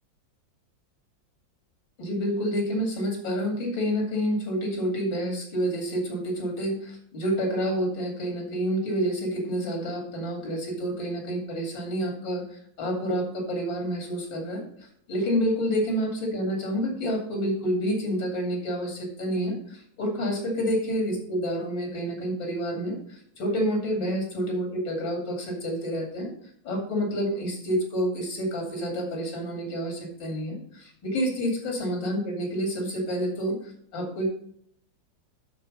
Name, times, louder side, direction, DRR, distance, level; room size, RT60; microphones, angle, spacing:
voice 1, 2.0-12.4 12.8-14.6 15.1-23.0 23.4-26.3 26.6-33.6 33.9-34.3, equal, 80° left, 1 dB, 3.3 m, -28 dB
12.0 x 4.4 x 5.2 m, 0.64 s
omnidirectional pair, 2.1 m